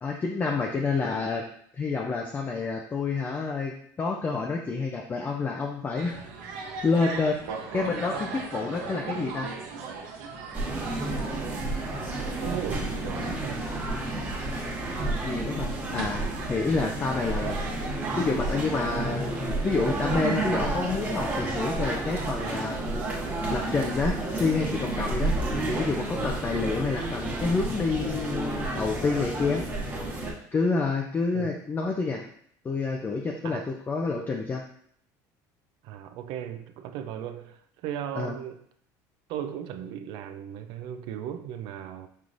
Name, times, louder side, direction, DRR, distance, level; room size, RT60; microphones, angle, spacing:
voice 1, 0.0-1.4 1.8-6.2 6.8-7.4 7.7-9.5 15.2-17.6 18.2-22.8 23.5-25.3 25.7-29.6 30.5-32.2 32.6-34.6 38.2-38.3, left 4 dB, 20° left, 1 dB, 0.4 m, -28 dB
sound 1, 6.0-23.6, right 4 dB, 90° right, 0.8 m, -40 dB
sound 2, 10.5-30.3, right 2 dB, 20° right, 1.2 m, -31 dB
voice 2, 11.5-12.0 12.4-13.7 26.1-26.3 31.3-31.5 33.4-33.7 35.8-38.7 39.3-42.1, right 10 dB, 65° right, 9 dB, 0.4 m, -37 dB
5.4 x 3.1 x 2.5 m, 0.63 s
cardioid pair, 120°, 9 cm